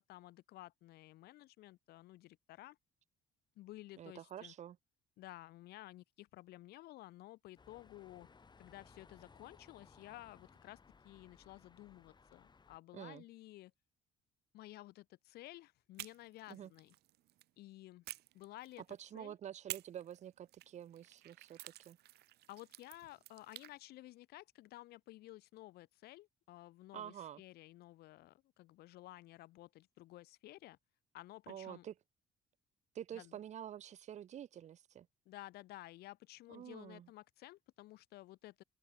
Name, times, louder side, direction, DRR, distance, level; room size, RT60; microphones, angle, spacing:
voice 1, 0.0-2.8 3.6-4.5 5.2-8.3 8.6-10.8 11.0-13.7 14.5-16.9 17.6-18.0 18.3-18.8 19.1-19.3 22.5-30.8 31.1-31.9 33.1-33.4 35.3-38.6, left 17 dB, 70° left, 0.6 m, -54 dB
voice 2, 4.0-4.8 12.9-13.2 16.5-16.7 19.0-22.0 26.9-27.4 31.5-31.9 32.9-35.1 36.5-37.1, right 10 dB, 45° right, 0.6 m, -48 dB
sound 1, 7.6-12.8, left 5 dB, 25° left, 2.4 m, -63 dB
sound 2, 15.9-17.5 18.0-19.1 19.7-23.7, right 16 dB, 75° right, 1.2 m, -51 dB
open air
cardioid pair, 110°, 17 cm